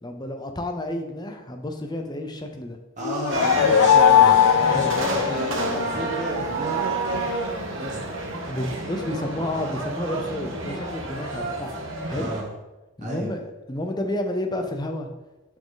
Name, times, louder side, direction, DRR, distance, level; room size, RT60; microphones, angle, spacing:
voice 1, 0.0-2.8 4.6-5.0 8.5-11.7 12.0-12.3 13.0-15.1, left 1 dB, 20° left, 5 dB, 0.6 m, -30 dB
sound 1, 3.0-5.9, left 9 dB, 85° left, 0.3 m, -19 dB
voice 2, 3.0-7.2 7.7-8.2 12.1-12.5 13.0-13.3, right 1 dB, 35° right, -3 dB, 1.4 m, -32 dB
sound 2, 3.3-12.4, right 2 dB, 60° right, 1.4 m, -29 dB
6.6 x 6.3 x 4.0 m, 1.1 s
head